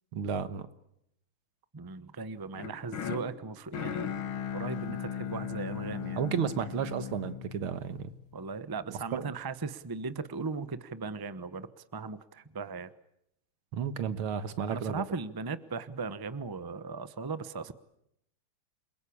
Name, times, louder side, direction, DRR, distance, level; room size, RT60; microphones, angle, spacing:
voice 1, 0.1-0.7 6.2-8.1 8.9-9.3 13.7-15.0, right 7 dB, 90° right, 12 dB, 2.2 m, -33 dB
voice 2, 1.7-4.2 4.5-6.2 8.3-12.9 14.7-17.7, right 4 dB, 20° right, 13 dB, 0.5 m, -38 dB
sound 1, 2.5-8.7, left 8 dB, 75° left, 2.3 m, -38 dB
29.0 x 22.0 x 8.7 m, 0.78 s
omnidirectional pair, 2.3 m